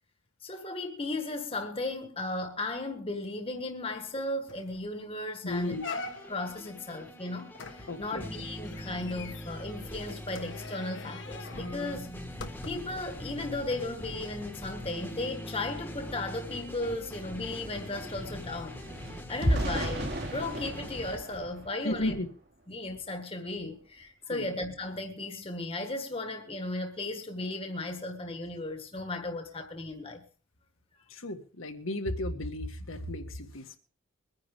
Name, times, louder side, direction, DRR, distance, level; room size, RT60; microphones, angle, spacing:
voice 1, 0.4-5.8 6.3-12.1 12.6-18.8 19.3-22.1 22.7-30.2, left 2 dB, 25° left, 1.6 m, -36 dB
sound 1, 4.0-4.1 4.5-4.8 5.2-5.3 5.8-6.5 7.5-13.0 13.6-13.7, left 3 dB, 60° left, 1.4 m, -42 dB
voice 2, 5.4-5.9 7.9-8.3 21.8-22.3 24.3-24.5 31.1-33.8, left 1 dB, 75° left, 1.8 m, -34 dB
sound 2, 5.5-21.2, equal, 10° left, 1.6 m, -42 dB
sound 3, 16.5-16.6 16.8-22.3 22.8-23.0 23.4-23.6, equal, 50° right, 2.9 m, -35 dB
23.0 x 10.0 x 3.6 m
head